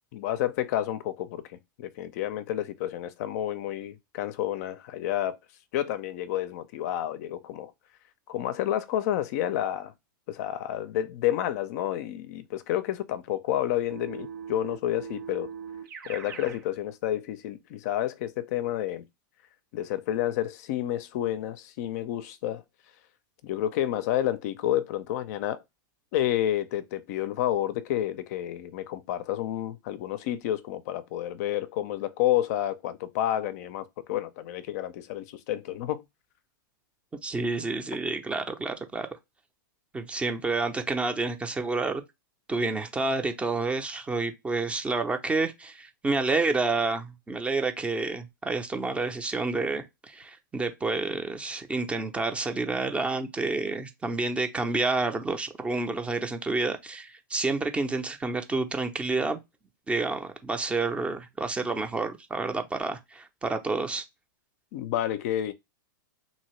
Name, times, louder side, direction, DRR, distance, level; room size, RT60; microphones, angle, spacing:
voice 1, 0.1-5.4 5.7-7.7 8.3-9.9 10.3-15.5 16.1-19.0 19.7-22.6 23.4-25.6 26.1-36.0 64.7-65.5, left 12 dB, 50° left, 0.4 m, -30 dB
Keyboard (musical), 13.9-16.6, right 7 dB, 80° right, 1.4 m, -40 dB
voice 2, 37.2-39.1 39.9-42.0 42.5-59.4 59.9-64.0, right 3 dB, 10° right, 0.5 m, -29 dB
2.7 x 2.7 x 3.0 m
hypercardioid pair, 130°, 11 cm